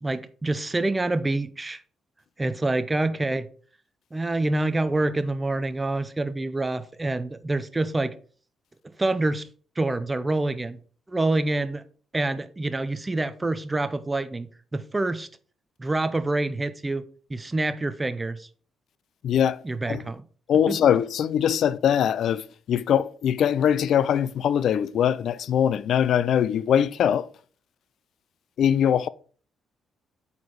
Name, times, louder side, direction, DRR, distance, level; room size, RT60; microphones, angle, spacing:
voice 1, 0.0-1.8 2.4-3.5 4.1-8.1 9.0-9.5 9.8-10.8 11.1-11.8 12.1-14.5 14.7-15.3 15.8-18.5 19.6-20.2 20.7-20.8, right 2 dB, 20° right, 0.6 m, -26 dB
voice 2, 19.2-19.6 19.9-20.0 20.5-27.3 28.6-29.1, left 9 dB, 70° left, 0.4 m, -22 dB
8.3 x 4.4 x 4.8 m
cardioid pair, 90°, 0 cm